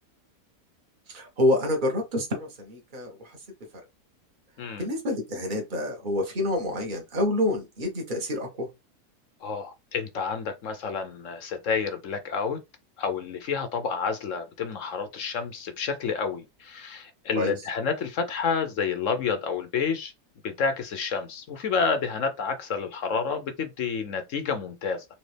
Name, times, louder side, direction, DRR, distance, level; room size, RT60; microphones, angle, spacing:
voice 1, 1.1-3.4 4.8-8.7 17.3-17.5, left 1 dB, 30° right, 1.5 m, -27 dB
voice 2, 4.6-4.9 9.4-12.6 13.0-20.1 20.4-25.1, left 5 dB, 60° left, 1.0 m, -29 dB
4.2 x 2.9 x 3.3 m
omnidirectional pair, 1.7 m